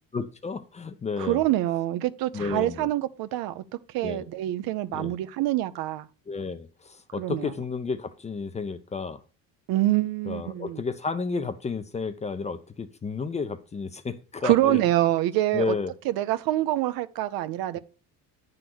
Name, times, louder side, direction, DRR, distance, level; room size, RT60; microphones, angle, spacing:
voice 1, 0.1-1.4 2.3-2.9 4.0-4.2 4.9-5.2 6.3-9.2 10.3-14.8 15.5-15.9, left 4 dB, 20° left, 0.5 m, -32 dB
voice 2, 1.2-3.6 3.9-6.1 7.2-7.5 9.7-10.8 14.4-15.8 16.0-17.8, right 15 dB, 70° right, 0.8 m, -25 dB
9.0 x 3.8 x 6.1 m
cardioid pair, 130°, 37 cm